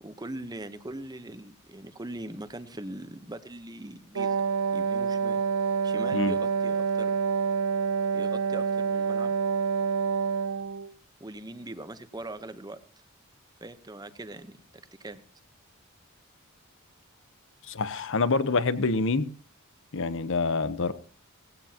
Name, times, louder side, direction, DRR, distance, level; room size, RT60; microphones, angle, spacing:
voice 1, 0.0-4.4 4.7-5.4 5.8-7.1 8.1-9.3 11.2-12.8 13.6-14.6 15.0-15.2, right 1 dB, 20° right, 0.9 m, -41 dB
Wind instrument woodwind instrument, 4.2-10.9, right 6 dB, 85° right, 0.6 m, -27 dB
voice 2, 17.7-19.3 19.9-20.9, left 3 dB, 65° left, 0.9 m, -26 dB
18.5 x 16.5 x 2.9 m
head